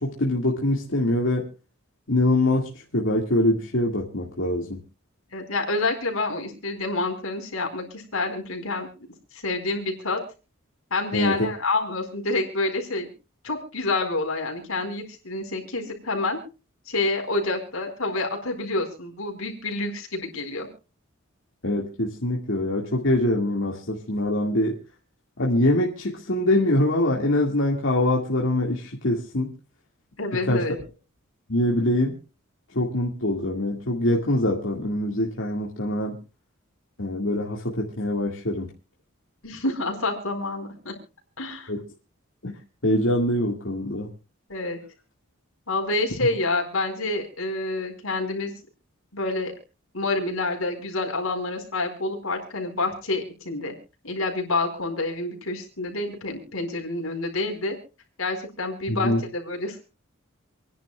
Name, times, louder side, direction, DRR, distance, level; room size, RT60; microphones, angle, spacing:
voice 1, 0.0-1.5 2.1-4.8 11.1-11.4 21.6-24.8 25.4-29.5 30.4-30.6 31.5-32.2 32.7-36.2 37.0-38.7 41.7-41.8 42.4-42.6 42.8-44.1 58.9-59.2, left 1 dB, 65° left, -1 dB, 2.1 m, -24 dB
voice 2, 5.3-8.9 9.3-10.2 10.9-13.1 13.4-16.4 16.9-20.7 30.2-30.8 39.4-40.9 41.4-41.7 44.5-44.8 45.7-48.5 49.1-49.5 49.9-53.7 54.0-57.8 58.2-59.8, left 2 dB, 85° left, 3 dB, 4.4 m, -28 dB
28.0 x 10.5 x 2.4 m, 0.32 s
head